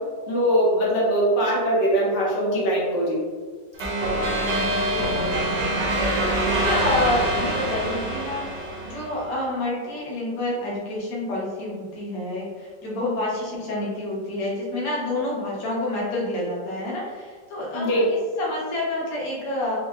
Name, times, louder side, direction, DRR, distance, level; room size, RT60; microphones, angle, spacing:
voice 1, 0.3-3.2 17.7-18.0, equal, 90° left, -5 dB, 1.6 m, -21 dB
sound 1, 3.8-9.3, right 1 dB, 70° right, 1.3 m, -25 dB
voice 2, 4.2-5.8 6.6-8.6 8.8-19.8, left 1 dB, 60° left, -6 dB, 1.3 m, -28 dB
5.4 x 2.1 x 2.4 m, 1.5 s
omnidirectional pair, 2.0 m